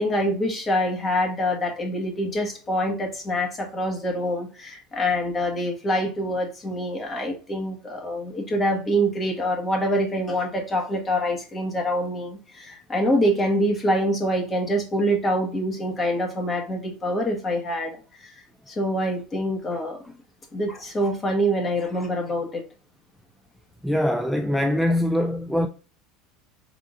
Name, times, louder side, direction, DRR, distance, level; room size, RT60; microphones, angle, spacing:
voice 1, 0.0-20.2 20.5-22.6, equal, 25° left, 1.4 m, -25 dB
voice 2, 23.8-25.7, left 1 dB, ahead, 0.3 m, -23 dB
4.7 x 3.6 x 2.5 m
supercardioid pair, 115°, 0 cm